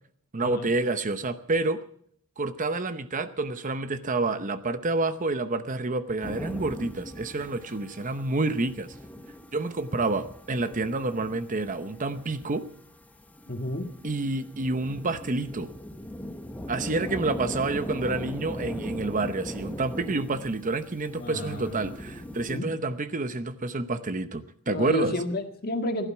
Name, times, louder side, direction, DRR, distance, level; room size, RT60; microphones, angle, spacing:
voice 1, 0.3-1.8 2.4-8.9 9.5-12.6 14.0-15.7 16.7-25.1, right 2 dB, 35° right, 11 dB, 0.8 m, -28 dB
sound 1, 6.2-22.6, equal, 5° left, 0.9 m, -40 dB
voice 2, 13.5-13.9 21.1-21.7 22.5-22.7 24.7-26.1, left 2 dB, 45° left, 6 dB, 1.8 m, -31 dB
16.5 x 11.5 x 7.1 m, 0.62 s
head